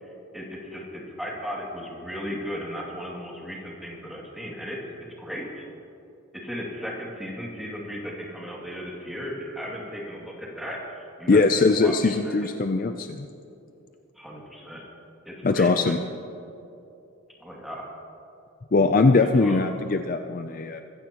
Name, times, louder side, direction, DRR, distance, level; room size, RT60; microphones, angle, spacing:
voice 1, 0.0-4.8 5.2-5.6 6.4-12.5 14.2-14.8 15.2-15.9 17.4-17.9 19.2-19.6, equal, ahead, -4 dB, 2.4 m, -36 dB
voice 2, 11.3-13.3 15.4-16.0 18.7-20.8, left 3 dB, 40° left, 7 dB, 0.4 m, -21 dB
23.5 x 15.5 x 3.0 m, 2.7 s
head